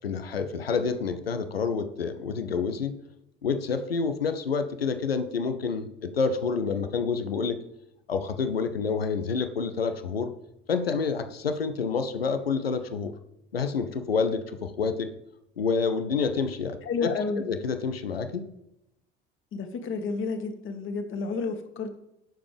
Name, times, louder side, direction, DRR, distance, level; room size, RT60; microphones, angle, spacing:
voice 1, 0.0-3.0 3.4-7.6 8.1-10.3 10.7-13.1 13.5-15.1 15.6-17.1 17.4-18.5, left 5 dB, 85° left, 9 dB, 0.8 m, -28 dB
voice 2, 16.8-17.5 19.5-22.0, left 4 dB, 45° left, 6 dB, 1.8 m, -30 dB
17.5 x 6.8 x 3.5 m, 0.83 s
figure-of-eight pair, 60°, 29 cm